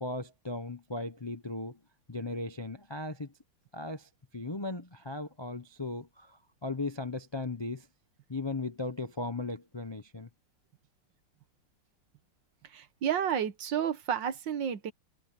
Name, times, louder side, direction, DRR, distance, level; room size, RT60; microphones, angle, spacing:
voice 1, 0.0-1.8 2.1-3.3 3.7-7.9 8.3-10.3, left 2 dB, 35° left, 0.4 m, -37 dB
voice 2, 12.7-14.9, right 8 dB, 65° right, 1.8 m, -31 dB
omnidirectional pair, 2.2 m